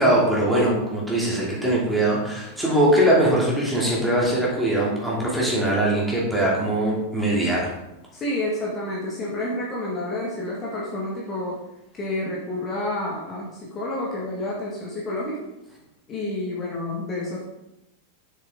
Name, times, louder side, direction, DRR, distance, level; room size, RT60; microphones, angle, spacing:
voice 1, 0.0-7.7, right 1 dB, 5° right, -5 dB, 2.8 m, -21 dB
voice 2, 8.1-11.6 11.9-15.4 16.1-17.4, left 1 dB, 25° left, -4 dB, 1.9 m, -29 dB
7.1 x 7.0 x 3.8 m, 0.90 s
figure-of-eight pair, 90°, 0 cm